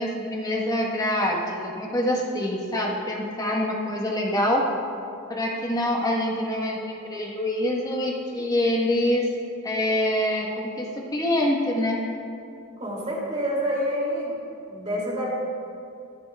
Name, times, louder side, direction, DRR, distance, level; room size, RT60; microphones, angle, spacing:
voice 1, 0.0-4.7 5.3-9.3 9.6-12.0, left 1 dB, 15° left, -2 dB, 1.1 m, -25 dB
voice 2, 12.8-14.3 14.7-15.3, equal, 30° right, -4 dB, 2.5 m, -27 dB
14.5 x 13.0 x 2.3 m, 2.5 s
head